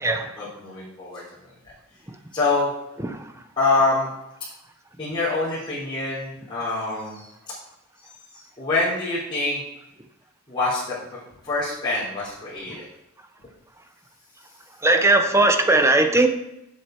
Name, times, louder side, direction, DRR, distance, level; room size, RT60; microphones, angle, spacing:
voice 1, 0.4-1.7 2.3-2.7 3.6-4.1 5.0-7.3 8.0-9.6 10.5-12.9, left 3 dB, 25° left, -12 dB, 3.8 m, -26 dB
voice 2, 14.8-16.3, right 2 dB, 10° right, 6 dB, 0.8 m, -18 dB
11.5 x 7.6 x 4.6 m, 0.86 s
head